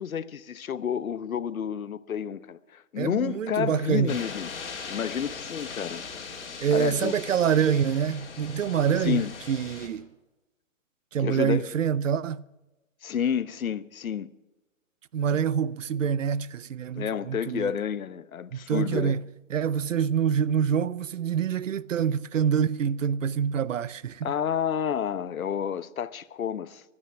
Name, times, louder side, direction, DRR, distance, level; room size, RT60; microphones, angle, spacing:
voice 1, 0.0-4.5 4.9-6.0 6.7-7.1 9.0-9.3 11.2-11.7 13.0-14.3 15.3-15.4 16.9-19.2 24.2-26.8, left 8 dB, 90° left, 1.0 m, -30 dB
voice 2, 3.0-4.2 6.6-10.1 11.1-12.4 15.1-17.7 18.5-19.2 19.5-24.3, right 8 dB, 65° right, 0.7 m, -26 dB
sound 1, 4.1-9.9, left 5 dB, 55° left, 3.7 m, -39 dB
15.5 x 12.5 x 5.9 m
hypercardioid pair, 175°, 40 cm